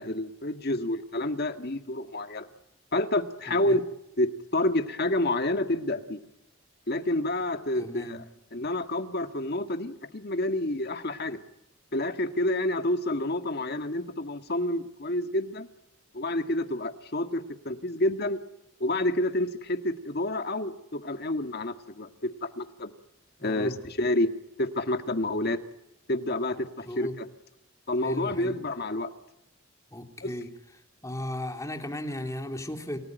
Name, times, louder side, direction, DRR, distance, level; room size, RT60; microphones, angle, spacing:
voice 1, 0.0-2.5 2.9-3.8 4.2-6.2 6.9-8.2 8.5-11.4 11.9-15.7 16.1-18.4 18.8-22.9 23.4-24.3 24.6-25.6 26.1-27.3 27.9-29.1 30.2-30.3, left 1 dB, 50° left, 8 dB, 1.9 m, -29 dB
voice 2, 3.5-3.8 7.8-8.2 23.4-23.8 26.8-27.1 28.0-28.5 29.9-30.5 31.0-33.0, left 1 dB, 15° left, 4 dB, 3.2 m, -35 dB
29.5 x 19.0 x 9.1 m, 0.89 s
head